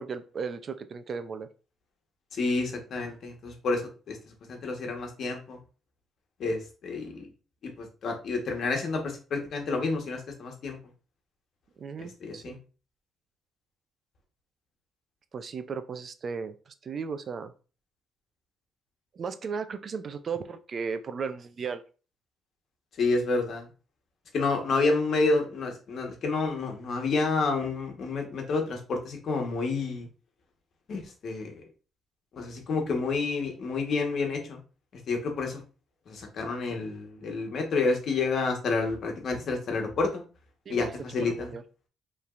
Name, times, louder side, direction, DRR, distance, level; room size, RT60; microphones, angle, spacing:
voice 1, 0.0-1.5 11.8-12.6 15.3-17.5 19.1-21.8 40.7-40.8 41.3-41.6, right 5 dB, 50° right, 11 dB, 0.5 m, -35 dB
voice 2, 2.3-4.2 4.5-5.6 6.4-7.3 7.8-10.8 12.0-12.6 23.0-23.7 24.3-30.1 30.9-31.6 32.3-34.6 35.1-35.6 36.1-40.2 40.7-41.5, left 3 dB, 60° left, 2 dB, 1.2 m, -29 dB
5.3 x 3.2 x 2.5 m, 0.35 s
cardioid pair, 90°, 0 cm